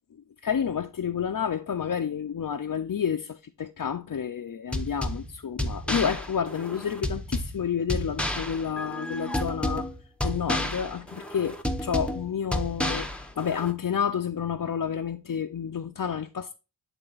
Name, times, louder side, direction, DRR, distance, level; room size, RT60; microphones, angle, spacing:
voice 1, 0.4-9.9 10.2-13.1 13.4-16.5, left 7 dB, 45° left, 0.6 m, -30 dB
sound 1, 4.7-13.7, left 1 dB, ahead, 0.8 m, -31 dB
9.0 x 3.5 x 4.0 m
wide cardioid pair, 65°, 46 cm